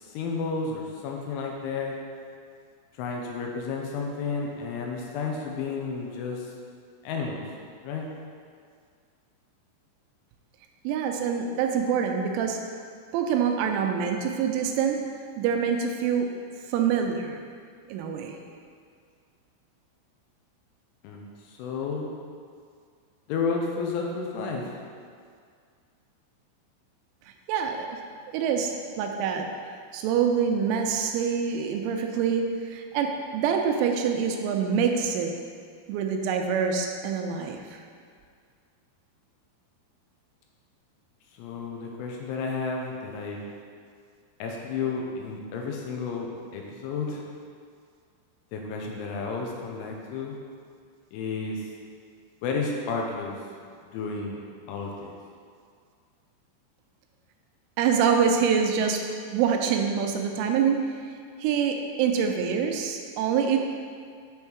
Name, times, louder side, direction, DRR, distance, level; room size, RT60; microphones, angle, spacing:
voice 1, 0.0-2.0 3.0-6.5 7.0-7.4 7.8-8.1 21.0-22.1 23.3-24.7 41.3-43.5 44.4-47.2 48.5-50.4 51.1-51.6 52.4-53.4 53.9-54.4 54.7-55.1, left 4 dB, 85° left, 0 dB, 3.1 m, -32 dB
voice 2, 10.8-12.6 13.1-15.0 15.4-16.3 16.7-17.4 17.9-18.4 27.5-28.0 28.3-28.7 29.0-29.5 29.9-35.3 35.9-37.8 57.8-59.0 59.3-60.8 61.4-63.6, right 7 dB, 85° right, 3 dB, 3.1 m, -25 dB
8.1 x 3.6 x 4.5 m, 2.1 s
omnidirectional pair, 5.6 m